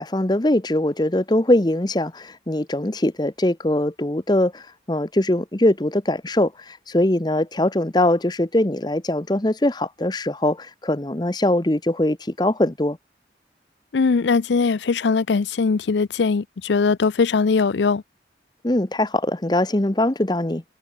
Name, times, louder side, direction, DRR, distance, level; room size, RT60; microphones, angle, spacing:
voice 1, 0.0-13.0 18.6-20.6, left 1 dB, 25° left, 0.9 m, -22 dB
voice 2, 13.9-18.0, left 4 dB, 85° left, 0.5 m, -20 dB
head